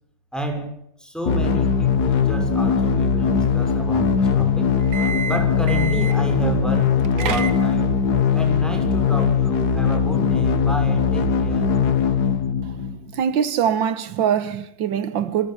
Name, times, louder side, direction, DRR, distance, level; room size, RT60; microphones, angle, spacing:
voice 1, 0.3-4.7 5.3-7.9 8.3-11.8, right 1 dB, ahead, 5.8 m, -30 dB
sound 1, 1.3-13.2, left 6 dB, 60° left, 1.9 m, -20 dB
sound 2, 4.8-6.3 6.9-8.0, right 6 dB, 60° right, 1.9 m, -29 dB
voice 2, 12.6-15.5, right 8 dB, 90° right, 1.8 m, -23 dB
26.5 x 13.5 x 9.1 m
omnidirectional pair, 2.0 m